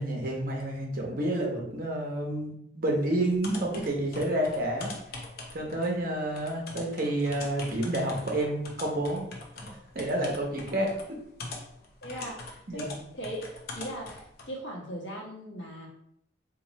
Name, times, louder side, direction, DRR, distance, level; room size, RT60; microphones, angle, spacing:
voice 1, 0.0-4.9 5.5-9.3 9.7-10.9 12.7-13.0, right 1 dB, 50° right, 0 dB, 0.9 m, -29 dB
sound 1, 3.3-14.5, left 3 dB, 55° left, 0.7 m, -43 dB
voice 2, 12.0-13.5 13.7-15.9, equal, 70° left, -3 dB, 1.2 m, -39 dB
3.0 x 2.8 x 4.0 m, 0.75 s
head